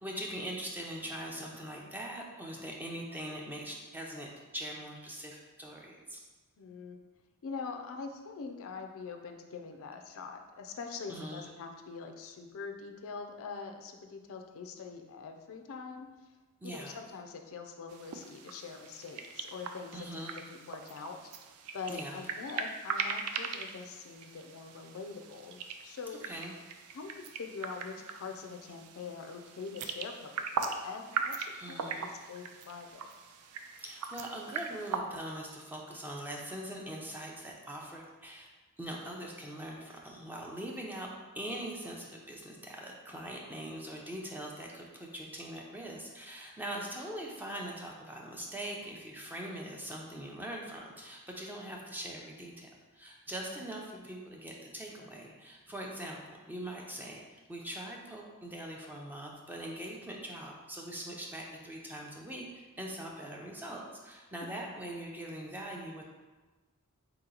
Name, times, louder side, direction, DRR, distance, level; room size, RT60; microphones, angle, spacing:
voice 1, 0.0-4.3 4.5-6.2 11.1-11.5 16.6-17.0 19.9-20.3 21.9-22.2 26.2-26.5 31.5-32.1 33.8-38.5 38.8-41.1 41.3-52.7 52.9-66.0, right 1 dB, 10° right, -1 dB, 0.5 m, -42 dB
voice 2, 6.6-7.0 7.4-16.1 16.6-21.2 21.7-26.3 26.9-33.0 46.6-46.9 53.3-53.7 64.4-64.7, left 5 dB, 65° left, 5 dB, 0.4 m, -44 dB
sound 1, 17.9-35.0, right 5 dB, 75° right, 0.4 m, -40 dB
4.0 x 2.9 x 3.8 m, 1.2 s
head